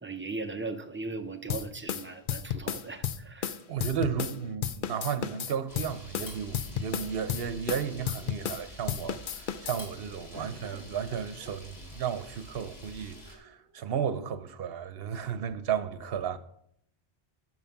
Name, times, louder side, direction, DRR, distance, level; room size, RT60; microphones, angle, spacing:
voice 1, 0.0-3.5, right 3 dB, 15° right, 0.5 m, -38 dB
sound 1, 1.5-4.4 4.6-8.6 8.9-9.8, left 9 dB, 60° left, 0.7 m, -33 dB
sound 2, 2.0-3.1 5.1-6.6 7.4-7.5 7.8-8.4 10.3-12.2 13.1-13.8, right 1 dB, 20° left, 3.3 m, -52 dB
voice 2, 3.7-9.2 9.6-16.4, right 8 dB, 70° right, 1.0 m, -33 dB
Camera, 5.7-13.3, equal, 80° left, 2.6 m, -48 dB
11.0 x 6.2 x 5.8 m
omnidirectional pair, 1.0 m